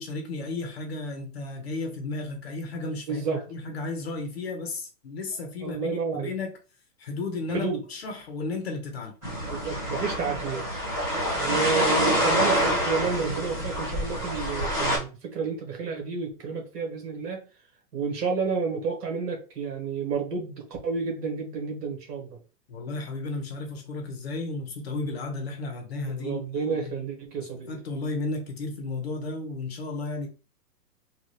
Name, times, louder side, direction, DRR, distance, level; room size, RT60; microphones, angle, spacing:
voice 1, 0.0-6.6 7.0-9.1 22.7-27.1 27.7-30.3, left 3 dB, 40° left, 4 dB, 0.8 m, -33 dB
voice 2, 3.1-3.4 5.6-6.3 7.5-7.8 9.5-10.6 11.3-17.4 17.9-22.4 26.1-27.7, right 5 dB, 70° right, 2 dB, 1.6 m, -30 dB
sound 1, 9.2-15.0, equal, 5° right, 1.0 m, -26 dB
3.9 x 2.4 x 3.1 m, 0.34 s
hypercardioid pair, 170°, 49 cm